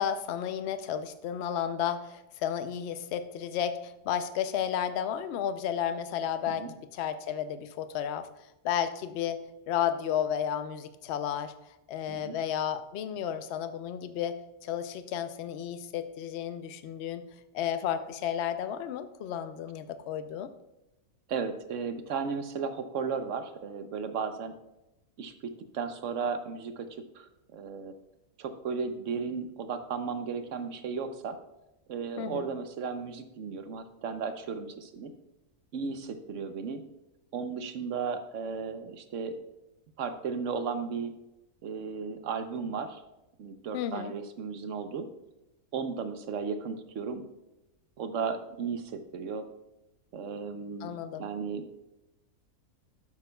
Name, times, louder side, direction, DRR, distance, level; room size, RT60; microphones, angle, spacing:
voice 1, 0.0-8.3 8.6-9.4 9.7-11.5 11.9-17.2 17.5-20.5 32.2-32.5 43.7-44.1 50.8-51.3, left 9 dB, 60° left, 11 dB, 0.7 m, -32 dB
voice 2, 21.3-24.5 25.2-26.9 27.1-27.9 28.4-31.4 31.9-35.1 35.7-36.8 37.3-39.4 40.0-41.1 41.6-43.0 43.4-45.0 45.7-47.2 48.0-49.5 50.1-50.9 51.2-51.7, right 5 dB, 60° right, 9 dB, 1.0 m, -35 dB
12.0 x 8.2 x 2.3 m, 0.93 s
omnidirectional pair, 1.6 m